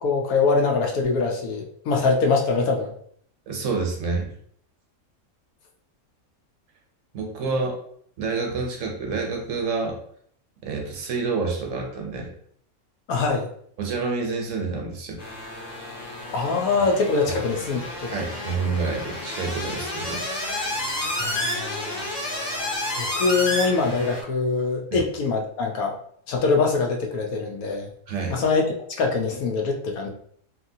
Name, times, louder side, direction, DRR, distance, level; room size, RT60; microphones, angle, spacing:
voice 1, 0.0-2.9 13.1-13.5 16.3-18.1 21.2-22.1 23.0-25.9 26.3-27.9 28.3-28.6 29.0-30.1, left 4 dB, 80° left, 1 dB, 1.1 m, -23 dB
voice 2, 3.5-4.3 7.1-7.8 8.2-10.0 10.6-12.3 13.8-15.2 17.2-17.3 18.1-20.2 24.9-25.1 28.1-28.4, right 4 dB, 65° right, 1 dB, 1.0 m, -28 dB
sound 1, 15.2-24.2, left 1 dB, 60° left, 1.2 m, -30 dB
2.8 x 2.8 x 2.6 m, 0.63 s
omnidirectional pair, 1.5 m